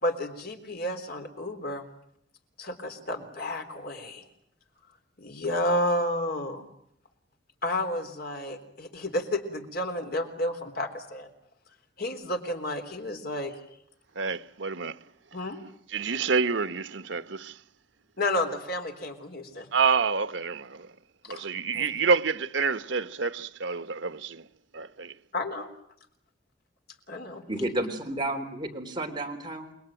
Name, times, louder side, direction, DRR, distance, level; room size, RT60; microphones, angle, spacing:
voice 1, 0.0-1.9 2.6-4.2 5.2-6.7 7.6-11.3 12.0-13.5 15.3-15.6 18.2-19.7 21.2-21.4 21.7-21.9 25.3-25.7 27.1-27.4, left 1 dB, 55° left, 3.7 m, -31 dB
voice 2, 14.1-15.0 15.9-17.6 19.7-20.9 21.3-24.5 24.7-25.1, right 5 dB, 80° right, 1.0 m, -28 dB
voice 3, 27.5-29.7, right 1 dB, 25° right, 3.4 m, -31 dB
29.0 x 22.0 x 9.1 m
head